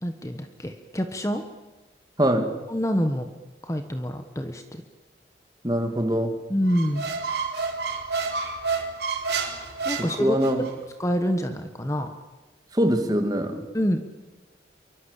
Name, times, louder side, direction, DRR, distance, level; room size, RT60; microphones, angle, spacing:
voice 1, 0.0-1.4 2.7-3.3 3.6-4.8 6.5-7.1 9.8-10.7 11.0-12.1 13.7-14.0, equal, 15° left, 7 dB, 1.4 m, -27 dB
voice 2, 2.2-2.5 5.6-6.4 10.2-10.6 12.7-13.6, equal, 20° right, 6 dB, 2.6 m, -23 dB
Squeak, 6.7-10.7, right 4 dB, 60° right, 4.3 m, -29 dB
28.5 x 24.0 x 8.4 m, 1.2 s
head